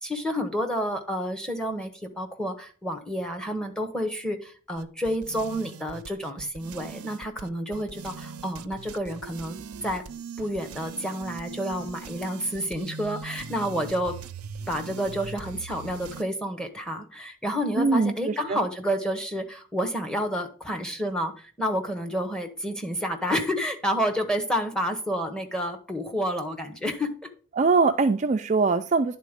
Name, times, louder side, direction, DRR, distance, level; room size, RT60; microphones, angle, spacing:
voice 1, 0.0-10.0 10.4-14.1 14.7-27.3, equal, 5° left, 4 dB, 1.0 m, -29 dB
sound 1, 4.8-16.2, right 5 dB, 90° right, 0.5 m, -41 dB
voice 2, 17.8-18.6 27.6-29.2, right 4 dB, 35° right, 7 dB, 0.4 m, -22 dB
10.5 x 4.0 x 5.1 m, 0.40 s
head